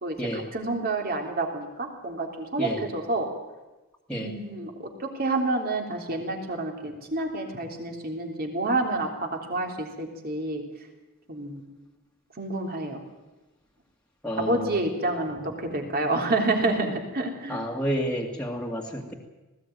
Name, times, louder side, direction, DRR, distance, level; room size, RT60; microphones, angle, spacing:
voice 1, 0.0-3.3 4.1-4.7 5.2-9.1 9.5-10.6 11.3-11.6 12.4-13.0 14.4-17.6, right 2 dB, 45° right, 2 dB, 3.5 m, -28 dB
voice 2, 14.2-14.7 17.5-19.1, equal, 5° left, -2 dB, 2.2 m, -30 dB
19.5 x 16.5 x 9.4 m, 1.1 s
head